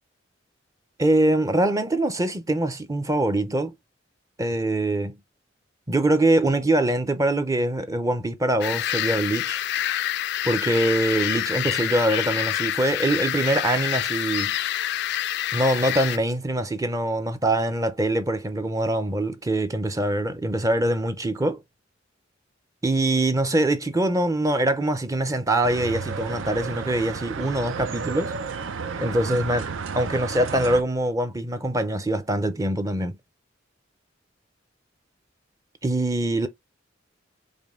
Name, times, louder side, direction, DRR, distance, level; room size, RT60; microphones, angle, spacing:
voice 1, 1.0-3.7 4.4-5.2 5.9-9.6 10.4-14.5 15.5-21.6 22.8-28.3 29.0-33.2 35.8-36.5, right 1 dB, 15° right, 0.5 m, -23 dB
sound 1, 8.6-16.2, left 12 dB, 60° left, 0.3 m, -27 dB
sound 2, 25.6-30.8, right 5 dB, 75° right, 0.5 m, -32 dB
5.1 x 2.2 x 3.6 m
head